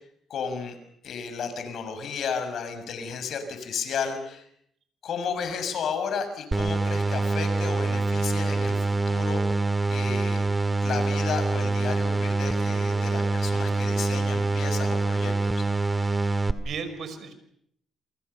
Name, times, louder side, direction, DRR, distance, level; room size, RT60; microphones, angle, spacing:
voice 1, 0.3-0.8 1.0-4.5 5.0-9.6 9.9-10.4 10.8-15.6, left 6 dB, 65° left, 8 dB, 6.5 m, -33 dB
sound 1, 6.5-16.5, right 3 dB, 20° right, 2.0 m, -25 dB
voice 2, 16.5-17.3, right 5 dB, 65° right, 10 dB, 5.7 m, -36 dB
28.5 x 24.5 x 6.9 m, 0.70 s
cardioid pair, 90°, 0 cm